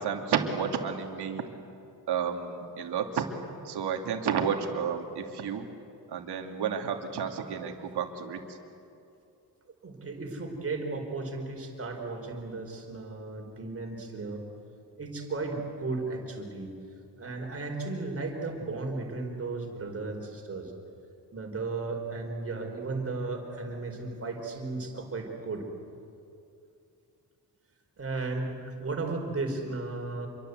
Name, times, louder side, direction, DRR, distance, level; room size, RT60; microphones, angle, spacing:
voice 1, 0.0-1.4 2.1-3.2 3.6-5.6 6.1-8.4, right 7 dB, 70° right, 4 dB, 2.9 m, -31 dB
voice 2, 9.8-14.4 15.0-16.7 17.2-20.7 21.3-25.6 28.0-30.3, right 3 dB, 35° right, 2 dB, 4.8 m, -35 dB
28.0 x 23.5 x 8.2 m, 2.7 s
cardioid pair, 135°, 41 cm